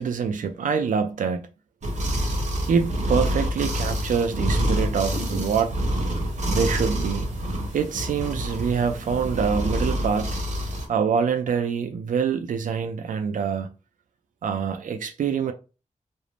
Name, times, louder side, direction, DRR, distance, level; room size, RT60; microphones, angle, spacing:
voice 1, 0.0-1.5 2.7-5.8 6.5-7.3 7.7-10.4 10.9-13.7 14.4-15.5, right 6 dB, 85° right, 0.4 m, -25 dB
sound 1, 1.8-10.9, equal, 65° right, 0.8 m, -27 dB
2.5 x 2.0 x 3.1 m
wide cardioid pair, 140°, 13 cm